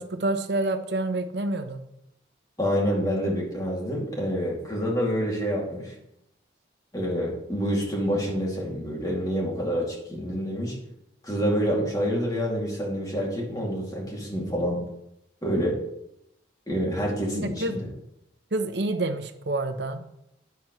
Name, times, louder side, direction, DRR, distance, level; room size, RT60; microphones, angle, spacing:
voice 1, 0.0-1.8 17.3-17.8 18.5-20.1, right 2 dB, 60° right, 8 dB, 0.9 m, -28 dB
voice 2, 2.6-5.9 6.9-10.8 11.2-14.8 15.4-15.8 16.7-17.8, equal, 20° left, -3 dB, 2.6 m, -27 dB
12.0 x 9.3 x 3.2 m, 0.80 s
head